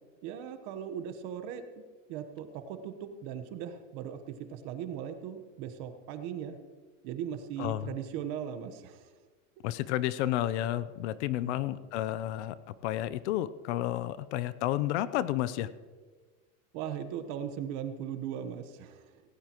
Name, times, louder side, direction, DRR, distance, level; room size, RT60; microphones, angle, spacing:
voice 1, 0.2-1.6 2.1-4.2 4.5-6.6 7.0-9.1 11.4-11.6 16.7-19.2, right 9 dB, 45° right, 9 dB, 1.2 m, -38 dB
voice 2, 7.6-7.9 9.6-12.6 12.8-15.7, left 13 dB, 65° left, 16 dB, 0.7 m, -31 dB
18.0 x 17.0 x 3.0 m, 1.4 s
supercardioid pair, 165°, 37 cm